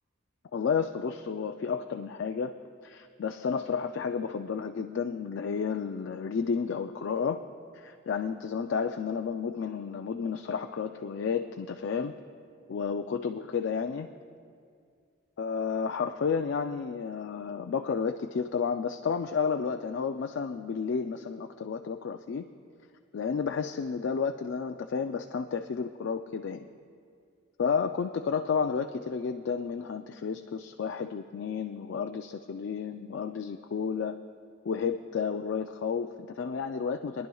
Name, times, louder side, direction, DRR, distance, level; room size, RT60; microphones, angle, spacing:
voice 1, 0.5-2.5 2.8-7.4 7.7-12.1 12.7-14.1 15.4-22.5 23.1-26.7 27.6-34.2 34.6-37.3, left 6 dB, 70° left, 6 dB, 0.4 m, -31 dB
24.5 x 10.5 x 2.3 m, 2.2 s
head